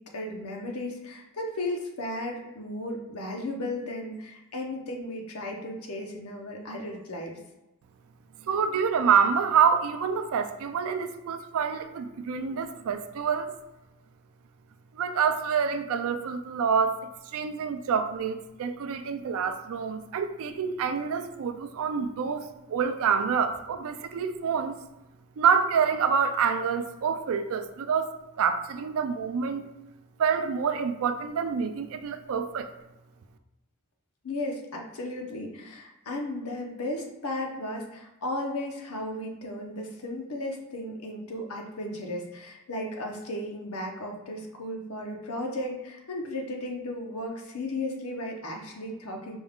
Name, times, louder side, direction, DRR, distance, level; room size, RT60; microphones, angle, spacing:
voice 1, 0.1-7.4 34.2-49.4, left 1 dB, 70° left, 1 dB, 0.8 m, -35 dB
voice 2, 8.4-13.5 14.9-24.8 25.4-29.7 30.2-32.7, right 6 dB, 65° right, 8 dB, 0.4 m, -27 dB
5.2 x 2.3 x 3.5 m, 0.97 s
head